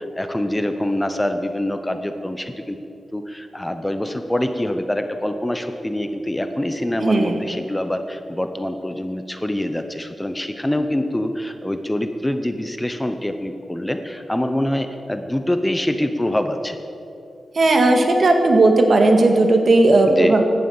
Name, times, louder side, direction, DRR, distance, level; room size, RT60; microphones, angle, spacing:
voice 1, 0.1-2.8 3.1-16.8 20.1-20.4, left 1 dB, 10° left, 8 dB, 0.8 m, -25 dB
voice 2, 7.0-7.3 17.6-20.4, right 2 dB, 50° right, 4 dB, 2.0 m, -15 dB
16.5 x 11.5 x 7.2 m, 2.8 s
wide cardioid pair, 115°, 0 cm